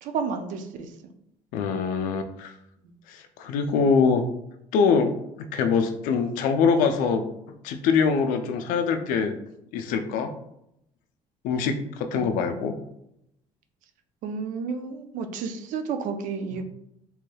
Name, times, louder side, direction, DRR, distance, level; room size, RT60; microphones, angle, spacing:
voice 1, 0.0-0.9 12.1-12.7 14.2-16.6, right 5 dB, 70° right, 7 dB, 0.4 m, -32 dB
voice 2, 1.5-2.5 3.1-4.2 4.7-5.1 5.5-7.2 7.6-9.3 9.7-10.3 11.4-12.8, left 5 dB, 80° left, 7 dB, 0.4 m, -23 dB
3.1 x 3.0 x 2.2 m, 0.79 s
supercardioid pair, 90°, 14 cm